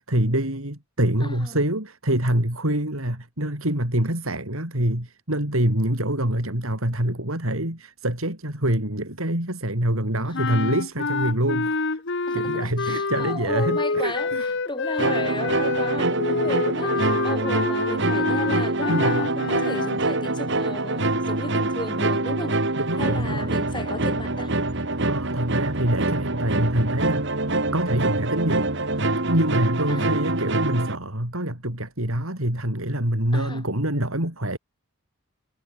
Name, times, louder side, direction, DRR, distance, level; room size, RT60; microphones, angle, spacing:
voice 1, 0.0-12.0 12.3-14.5 18.9-19.3 22.8-23.5 25.0-27.4 27.7-28.9 29.2-34.6, right 1 dB, 75° right, 6.0 m, -25 dB
voice 2, 1.2-1.6 10.3-10.7 12.3-22.6 23.0-24.5 29.9-30.1 33.3-33.6, left 2 dB, 20° left, 7.6 m, -35 dB
sound 1, 10.3-20.0, left 3 dB, 60° left, 1.3 m, -27 dB
sound 2, 15.0-31.0, right 2 dB, 60° right, 2.7 m, -25 dB
head